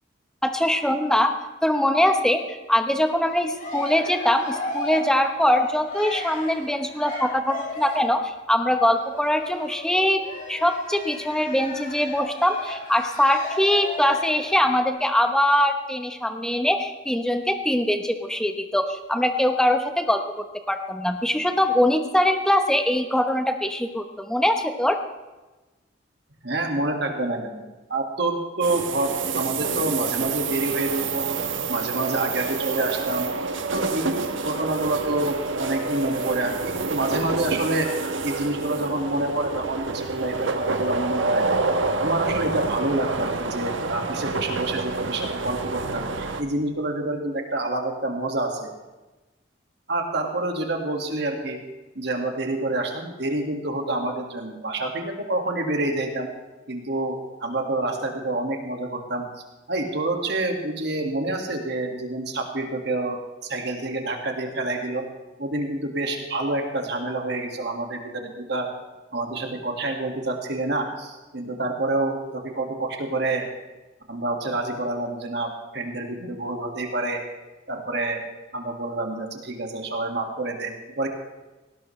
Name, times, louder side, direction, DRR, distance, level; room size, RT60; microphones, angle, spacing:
voice 1, 0.4-1.3 1.6-25.0, left 1 dB, 5° left, 5 dB, 1.0 m, -22 dB
Cheering, 3.2-8.2 8.9-14.5, left 1 dB, 40° left, 4.1 m, -35 dB
voice 2, 26.4-27.6 27.9-31.3 31.7-33.3 33.7-37.9 38.2-41.6 42.0-48.7 49.9-51.6 52.0-56.3 56.7-59.2 59.7-65.0 65.4-68.7 69.1-73.5 74.1-77.2 77.7-78.2 78.5-81.1, right 2 dB, 60° right, 3 dB, 1.9 m, -27 dB
sound 1, 28.6-46.4, right 3 dB, 75° right, 1.1 m, -28 dB
18.5 x 17.0 x 3.3 m, 1.1 s
head